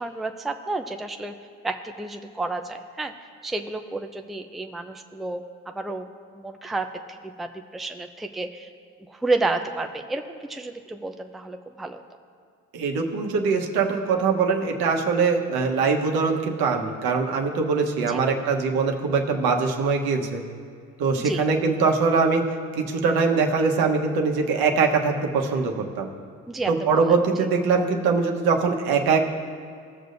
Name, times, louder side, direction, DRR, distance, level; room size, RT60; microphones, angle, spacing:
voice 1, 0.0-1.3 1.6-3.1 3.4-5.4 5.8-6.1 6.3-6.9 7.4-8.7 9.1-12.0 18.1-18.2 21.1-21.5 26.5-27.2, right 2 dB, ahead, 5 dB, 0.5 m, -30 dB
voice 2, 12.7-20.4 21.0-26.1 26.7-29.2, right 4 dB, 70° right, 2 dB, 1.2 m, -22 dB
18.5 x 6.5 x 2.6 m, 2.2 s
supercardioid pair, 60°, 38 cm